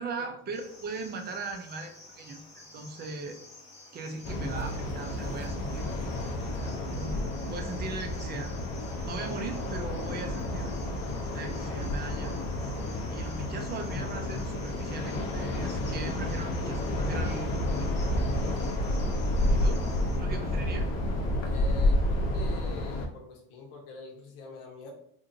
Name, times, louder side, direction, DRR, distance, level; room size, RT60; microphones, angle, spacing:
voice 1, 0.0-3.4 3.9-5.9 6.5-8.5 9.0-10.7 11.3-12.3 12.6-12.8 13.1-17.9 19.5-19.8 20.2-20.9, right 3 dB, 25° right, 5 dB, 0.3 m, -39 dB
Cricket, 0.5-20.2, left 2 dB, 15° left, 1.0 m, -51 dB
sound 1, 4.2-23.1, left 1 dB, 40° left, 0.6 m, -30 dB
voice 2, 21.4-24.9, left 3 dB, 90° left, 1 dB, 1.0 m, -45 dB
2.9 x 2.5 x 2.6 m, 0.70 s
cardioid pair, 130°, 42 cm